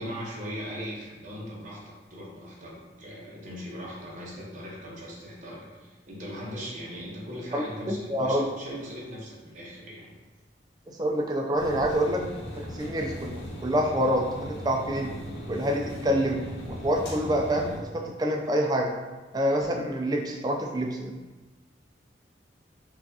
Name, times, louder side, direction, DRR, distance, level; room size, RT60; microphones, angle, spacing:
voice 1, 0.0-10.2, equal, 40° right, -4 dB, 0.8 m, -39 dB
voice 2, 7.5-8.4 10.9-12.2 12.6-13.3 13.6-15.1 15.5-18.9 19.3-21.1, equal, 20° right, 1 dB, 0.3 m, -27 dB
sound 1, 11.6-17.8, equal, 70° left, 1.0 m, -38 dB
4.7 x 2.3 x 2.7 m, 1.2 s
head